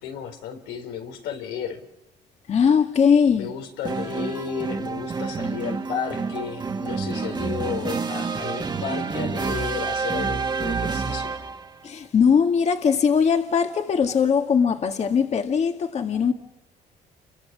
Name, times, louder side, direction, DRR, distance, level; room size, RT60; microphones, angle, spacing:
voice 1, 0.0-1.8 3.4-11.4, left 8 dB, 90° left, 4.3 m, -33 dB
voice 2, 2.5-3.5 11.8-16.3, left 6 dB, 40° left, 2.1 m, -20 dB
sound 1, 3.8-11.7, right 4 dB, 25° right, 2.0 m, -28 dB
29.5 x 23.5 x 7.5 m
cardioid pair, 110°, 17 cm